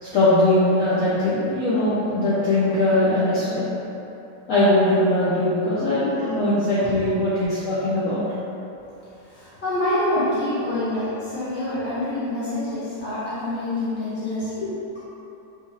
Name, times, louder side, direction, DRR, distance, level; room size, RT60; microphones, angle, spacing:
voice 1, 0.0-3.6 4.5-8.2 14.6-14.7, left 1 dB, 65° left, -11 dB, 0.9 m, -20 dB
voice 2, 9.2-14.7, left 1 dB, 10° left, -13 dB, 0.9 m, -26 dB
3.4 x 3.2 x 2.9 m, 2.9 s
omnidirectional pair, 1.9 m